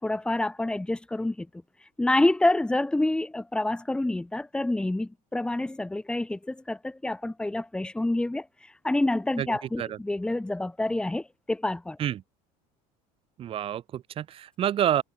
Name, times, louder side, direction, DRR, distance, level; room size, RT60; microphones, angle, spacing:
voice 1, 0.0-1.5 2.0-8.5 8.8-12.0, left 2 dB, 5° left, 5.1 m, -27 dB
voice 2, 13.4-15.0, right 10 dB, 40° right, 6.8 m, -28 dB
cardioid pair, 150°, 15 cm